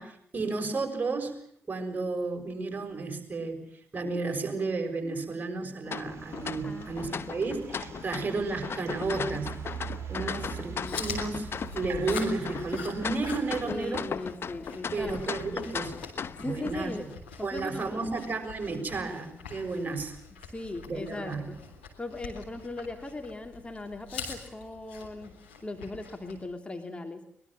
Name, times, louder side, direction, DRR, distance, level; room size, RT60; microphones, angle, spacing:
voice 1, 0.0-1.3 1.7-9.5 10.1-10.7 11.0-14.1 14.9-16.0 16.4-16.9 17.4-20.1 20.9-21.5, right 3 dB, 30° right, 5 dB, 6.4 m, -32 dB
sound 1, 5.9-16.7, left 6 dB, 45° left, 1.0 m, -37 dB
sound 2, 6.0-13.7, right 9 dB, 50° right, 2.3 m, -43 dB
voice 2, 6.6-7.4 10.2-11.0 13.6-15.1 16.4-17.1 17.4-18.1 20.5-21.6 22.0-25.3 25.6-27.2, left 2 dB, 20° left, 5 dB, 3.0 m, -39 dB
Chewing mastication, 10.5-26.4, left 5 dB, 85° left, 3.5 m, -44 dB
23.0 x 21.5 x 7.7 m, 0.65 s
figure-of-eight pair, 40°, 6 cm